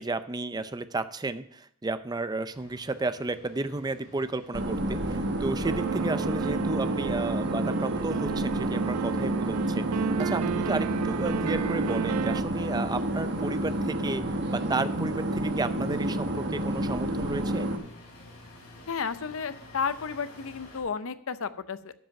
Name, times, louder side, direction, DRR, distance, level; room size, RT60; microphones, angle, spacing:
voice 1, 0.0-17.7, right 3 dB, 20° right, 12 dB, 0.5 m, -33 dB
sound 1, 2.5-20.8, left 1 dB, 80° left, 5.2 m, -51 dB
sound 2, 4.5-17.8, right 1 dB, 50° right, 1.1 m, -30 dB
sound 3, 5.6-12.4, right 8 dB, 85° right, 0.3 m, -32 dB
voice 2, 18.9-21.9, left 6 dB, 65° left, 13 dB, 0.6 m, -32 dB
12.5 x 5.3 x 5.8 m, 0.64 s
head